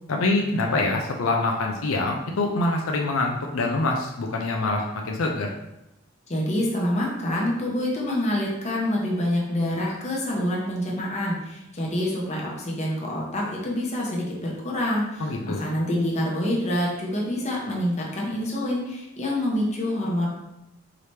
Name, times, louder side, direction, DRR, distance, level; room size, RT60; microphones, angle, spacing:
voice 1, 0.1-5.5 15.2-15.7, left 2 dB, 85° left, 0 dB, 0.5 m, -25 dB
voice 2, 6.3-20.3, left 1 dB, 35° left, -3 dB, 1.0 m, -26 dB
4.8 x 2.8 x 3.2 m, 0.90 s
head